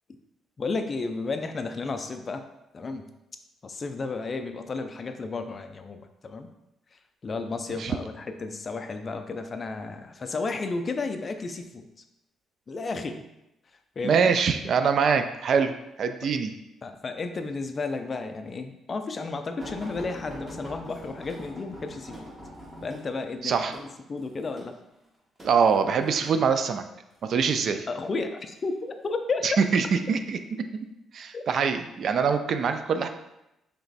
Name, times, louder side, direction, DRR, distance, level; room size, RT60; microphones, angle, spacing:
voice 1, 0.6-2.4 2.7-3.1 3.6-6.5 6.9-11.9 12.7-13.2 14.0-14.3 16.8-22.3 22.8-24.8 27.9-29.6 31.3-31.4, left 3 dB, 30° left, 7 dB, 0.3 m, -33 dB
voice 2, 14.0-15.7 16.0-16.5 23.4-23.8 25.4-26.8 27.2-27.9 29.4-30.4 30.7-30.9 31.1-33.1, right 6 dB, 50° right, 8 dB, 0.3 m, -24 dB
sound 1, 19.6-26.4 27.1-27.6 28.5-29.2 29.9-30.1 30.5-30.6, equal, 20° right, 1.3 m, -43 dB
3.3 x 2.9 x 4.0 m, 0.89 s
cardioid pair, 130°, 0 cm